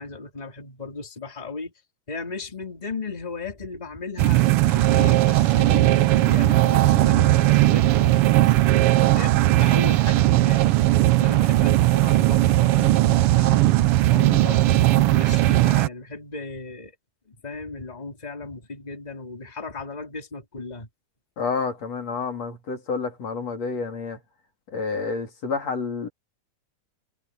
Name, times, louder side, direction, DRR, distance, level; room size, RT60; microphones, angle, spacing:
voice 1, 0.0-1.7 2.1-10.7 11.2-13.8 14.1-16.9 17.3-20.9, left 3 dB, 15° left, 3.4 m, -36 dB
sound 1, 4.2-15.9, right 16 dB, 80° right, 1.3 m, -18 dB
voice 2, 21.4-24.2 24.7-26.1, left 4 dB, 60° left, 4.5 m, -29 dB
omnidirectional pair, 3.3 m